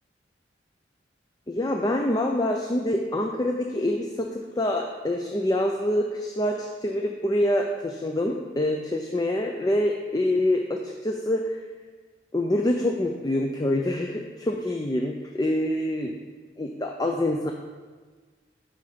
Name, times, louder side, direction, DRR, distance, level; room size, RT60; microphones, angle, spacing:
voice 1, 1.5-11.6 12.3-16.1 16.6-17.5, left 1 dB, 20° left, 2 dB, 0.4 m, -26 dB
11.0 x 3.9 x 5.1 m, 1.4 s
head